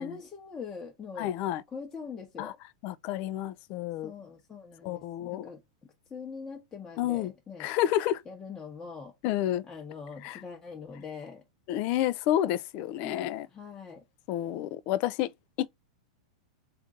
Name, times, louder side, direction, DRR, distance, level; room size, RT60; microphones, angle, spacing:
voice 1, 0.0-1.3 1.7-2.6 4.0-5.6 6.1-7.7 8.3-9.1 9.7-11.4 13.0-14.0, left 5 dB, 15° left, 1.1 m, -42 dB
voice 2, 1.2-1.6 2.4-2.5 2.8-4.1 4.8-5.5 7.0-7.3 7.6-8.2 9.2-9.6 10.2-10.4 11.7-13.5 14.3-15.3 15.6-15.7, left 12 dB, 40° left, 0.5 m, -29 dB
3.7 x 2.6 x 3.8 m
supercardioid pair, 145°, 3 cm